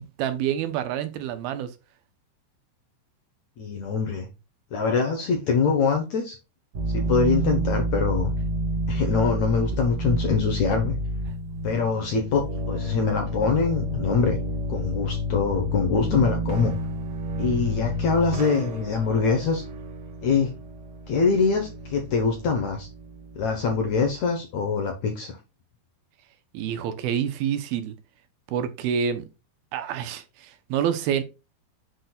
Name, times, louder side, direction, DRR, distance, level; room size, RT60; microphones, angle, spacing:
voice 1, 0.0-1.7 26.5-27.9 28.5-29.3 29.7-31.2, right 9 dB, 75° right, 2.6 m, -27 dB
voice 2, 3.6-4.3 4.7-6.4 6.9-8.3 8.9-11.0 11.6-14.4 14.7-16.7 17.4-19.6 20.2-20.5 21.1-22.9 23.4-25.4, left 5 dB, 65° left, 1.9 m, -24 dB
sound 1, 6.7-24.1, equal, 55° right, 2.0 m, -30 dB
8.1 x 6.1 x 2.3 m
omnidirectional pair, 4.6 m